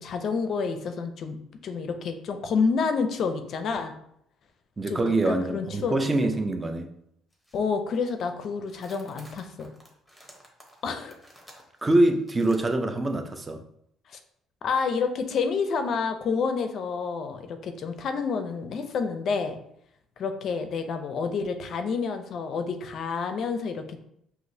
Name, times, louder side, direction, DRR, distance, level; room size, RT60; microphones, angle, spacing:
voice 1, 0.0-1.4 1.6-3.9 4.9-5.0 5.3-6.3 7.5-9.7 10.8-11.2 14.1-14.2 14.6-19.6 20.2-24.0, left 5 dB, 50° left, 7 dB, 0.5 m, -29 dB
voice 2, 4.8-6.9 11.8-13.6, right 2 dB, 15° right, 6 dB, 0.5 m, -24 dB
sound 1, 7.3-7.7 7.9-8.3 8.6-12.6, equal, ahead, 0.9 m, -53 dB
6.0 x 2.8 x 2.7 m, 0.72 s
cardioid pair, 135°, 0 cm